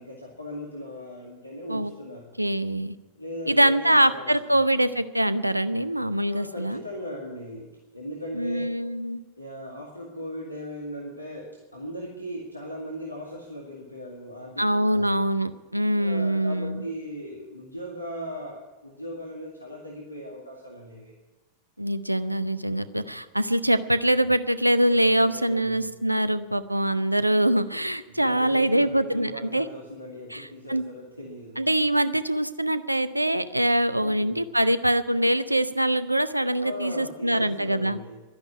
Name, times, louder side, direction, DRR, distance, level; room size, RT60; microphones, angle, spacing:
voice 1, 0.0-2.3 3.2-4.8 6.3-8.6 9.4-15.1 16.0-21.1 25.0-25.9 28.1-31.7 33.9-34.4 36.6-38.2, equal, 85° left, -2 dB, 2.2 m, -38 dB
voice 2, 2.4-2.9 3.5-6.8 8.3-9.2 14.6-16.8 21.8-29.7 30.3-30.8 31.6-38.0, right 1 dB, 85° right, 14 dB, 0.7 m, -24 dB
12.0 x 10.5 x 9.7 m, 1.2 s
figure-of-eight pair, 90°, 0 cm